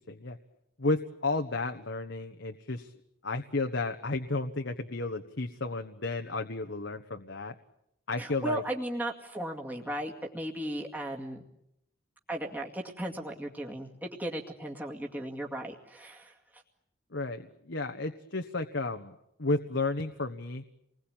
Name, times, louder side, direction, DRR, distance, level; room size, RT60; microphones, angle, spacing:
voice 1, 0.1-0.4 0.8-2.9 3.2-7.5 8.1-8.6 17.1-19.1 19.4-20.6, left 3 dB, 65° left, 5 dB, 1.3 m, -32 dB
voice 2, 8.2-11.4 12.3-16.6, right 1 dB, 10° right, 0 dB, 2.3 m, -36 dB
29.5 x 21.0 x 9.1 m, 0.79 s
head